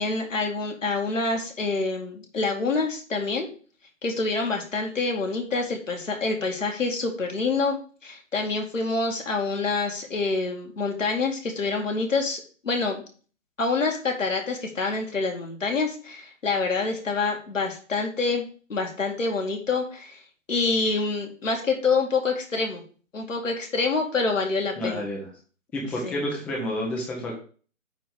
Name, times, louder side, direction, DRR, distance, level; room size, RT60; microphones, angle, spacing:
voice 1, 0.0-3.5 4.0-13.0 13.6-20.2 20.5-22.8 23.1-25.0 26.0-26.2, left 3 dB, 70° left, 2 dB, 2.3 m, -27 dB
voice 2, 24.8-25.3 25.7-27.3, left 1 dB, 5° left, -3 dB, 0.7 m, -29 dB
8.9 x 3.3 x 6.5 m, 0.40 s
figure-of-eight pair, 140°, 40 cm